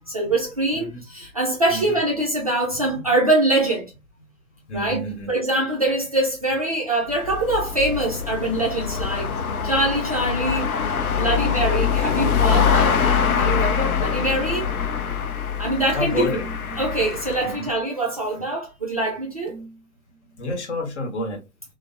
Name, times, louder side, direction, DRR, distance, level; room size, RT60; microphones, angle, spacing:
voice 1, 0.1-3.9 4.7-5.0 5.3-9.3 9.6-10.7 11.1-14.7 15.6-16.3 16.8-19.6, right 2 dB, 30° right, 0.4 m, -23 dB
voice 2, 0.7-1.0 1.7-2.0 4.7-5.3 15.9-16.5 17.4-17.7 20.4-21.4, left 1 dB, 50° left, 0.9 m, -29 dB
sound 1, 7.1-17.7, left 7 dB, 75° left, 0.6 m, -24 dB
sound 2, 7.8-15.3, left 7 dB, 30° left, 0.5 m, -35 dB
sound 3, 14.2-15.0 16.1-17.0 19.5-20.6, right 2 dB, 15° left, 1.0 m, -41 dB
3.2 x 2.0 x 2.4 m
figure-of-eight pair, 120°, 44 cm